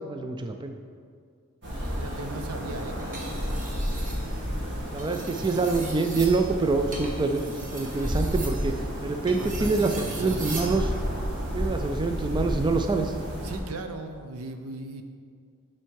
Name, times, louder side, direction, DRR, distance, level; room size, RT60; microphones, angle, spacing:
voice 1, 0.1-0.8 4.9-8.7 9.0-10.9 11.5-13.1, right 3 dB, 20° right, 5 dB, 0.3 m, -26 dB
sound 1, 1.6-13.6, equal, 55° right, 2.2 m, -32 dB
voice 2, 1.9-3.0 9.3-10.6 13.4-15.0, right 2 dB, 80° right, 7 dB, 0.7 m, -38 dB
sound 2, 3.0-4.2 4.9-10.8 12.2-12.5, right 2 dB, 35° right, 1.3 m, -40 dB
11.0 x 4.4 x 4.7 m, 2.1 s
head